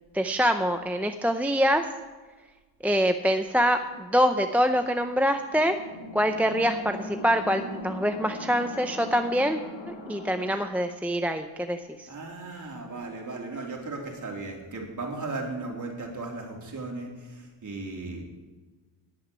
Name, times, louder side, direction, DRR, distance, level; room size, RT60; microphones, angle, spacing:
voice 1, 0.1-1.9 2.8-5.8 6.1-9.6 9.9-12.1, equal, 5° right, 6 dB, 0.6 m, -25 dB
sound 1, 3.8-10.6, left 1 dB, 70° left, 3.2 m, -40 dB
voice 2, 12.1-18.2, right 3 dB, 35° right, 0 dB, 3.3 m, -36 dB
10.5 x 8.0 x 9.5 m, 1.3 s
cardioid pair, 100°, 49 cm